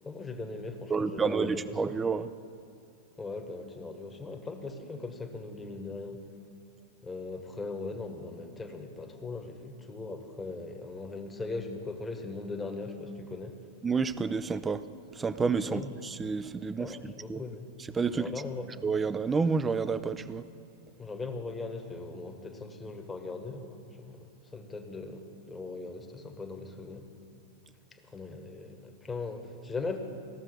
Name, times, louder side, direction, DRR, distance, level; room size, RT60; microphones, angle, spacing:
voice 1, 0.0-1.8 3.2-6.2 7.0-13.6 15.6-15.9 16.8-17.7 18.1-18.7 21.0-27.1 28.0-30.0, left 3 dB, 15° left, 5 dB, 1.1 m, -39 dB
voice 2, 0.9-2.3 13.8-14.8 15.2-17.4 17.9-18.2 18.8-20.4, right 5 dB, 15° right, 14 dB, 0.4 m, -29 dB
15.0 x 6.4 x 6.2 m, 2.6 s
figure-of-eight pair, 95°, 0 cm